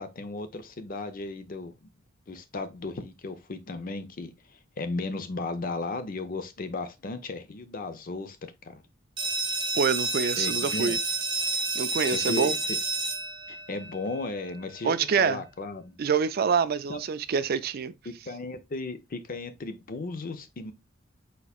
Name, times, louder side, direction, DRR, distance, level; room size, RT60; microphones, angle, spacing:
voice 1, 0.0-1.9 2.3-8.8 10.4-10.9 12.1-12.6 13.5-16.0 16.9-17.0 18.1-20.7, left 3 dB, 45° left, 0.6 m, -35 dB
sound 1, 9.2-14.6, right 3 dB, 25° right, 0.7 m, -30 dB
voice 2, 9.7-11.0 11.7-12.6 14.8-15.4 16.0-17.9, right 6 dB, 50° right, 0.4 m, -26 dB
4.3 x 4.0 x 2.3 m
head